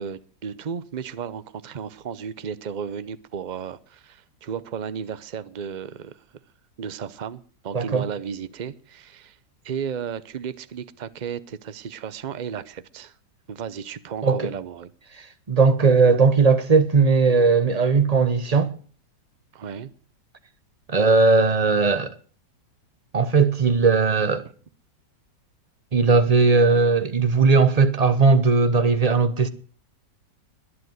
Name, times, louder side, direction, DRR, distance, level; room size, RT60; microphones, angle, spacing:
voice 1, 0.0-6.2 6.8-9.4 9.6-13.1 13.5-14.9 19.5-19.9, right 7 dB, 55° right, 0.5 m, -34 dB
voice 2, 7.7-8.0 14.2-14.5 15.2-18.7 20.9-22.1 23.1-24.5 25.9-29.5, right 4 dB, 30° right, 0.9 m, -18 dB
21.5 x 8.0 x 7.9 m
omnidirectional pair, 1.9 m